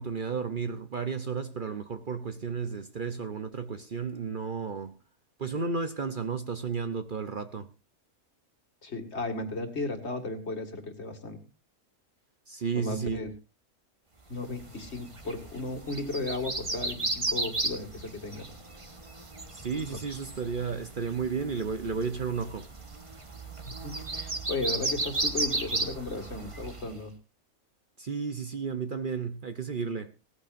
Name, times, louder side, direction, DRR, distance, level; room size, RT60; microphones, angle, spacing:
voice 1, 0.0-5.0 5.4-7.7 12.5-13.2 19.5-22.7 28.0-30.1, right 5 dB, 45° right, 0.8 m, -33 dB
voice 2, 8.8-11.4 12.8-13.3 14.3-18.5 19.9-20.2 23.6-27.1, left 2 dB, 50° left, 2.4 m, -35 dB
sound 1, 14.5-27.0, right 2 dB, 25° right, 1.3 m, -35 dB
18.5 x 14.5 x 2.6 m
omnidirectional pair, 1.5 m